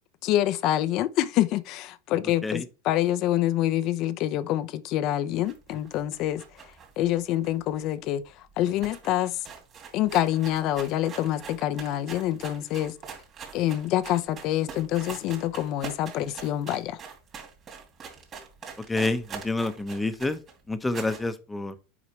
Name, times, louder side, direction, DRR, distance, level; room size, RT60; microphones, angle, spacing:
voice 1, 0.2-6.4 7.0-8.2 8.6-9.3 9.9-12.9 13.5-17.0, left 13 dB, 50° left, 0.6 m, -26 dB
sound 1, 5.4-8.0 8.3-8.4 8.6-21.3, right 6 dB, 30° right, 2.6 m, -43 dB
voice 2, 18.9-20.4 20.7-21.7, left 2 dB, 10° left, 0.9 m, -28 dB
8.6 x 4.9 x 3.2 m
supercardioid pair, 115°, 0 cm